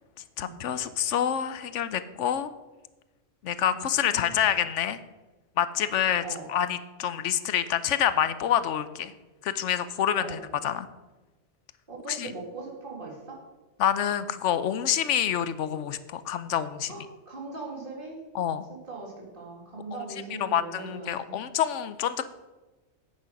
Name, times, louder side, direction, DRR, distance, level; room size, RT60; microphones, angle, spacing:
voice 1, 0.4-2.5 3.4-5.0 5.6-6.2 6.5-9.1 9.4-10.4 10.6-10.9 12.1-12.3 13.8-16.9 18.3-18.6 20.4-22.3, left 9 dB, 85° left, 13 dB, 1.0 m, -27 dB
voice 2, 3.7-4.3 6.2-6.5 10.1-10.5 11.9-13.4 16.9-18.2 18.7-21.4, right 3 dB, 45° right, -2 dB, 2.8 m, -40 dB
10.5 x 8.7 x 5.2 m, 1.1 s
omnidirectional pair, 1.2 m